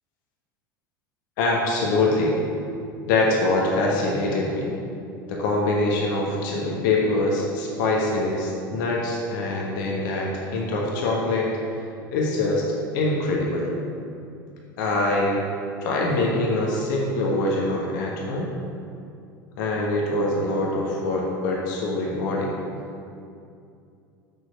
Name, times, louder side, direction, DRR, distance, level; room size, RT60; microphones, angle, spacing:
voice 1, 1.4-2.4 3.1-4.7 5.3-11.5 12.1-12.6 12.9-13.7 14.8-15.4 15.8-18.5 19.6-22.5, left 2 dB, 60° left, -2 dB, 1.4 m, -24 dB
6.8 x 6.4 x 6.3 m, 2.5 s
figure-of-eight pair, 75°, 12 cm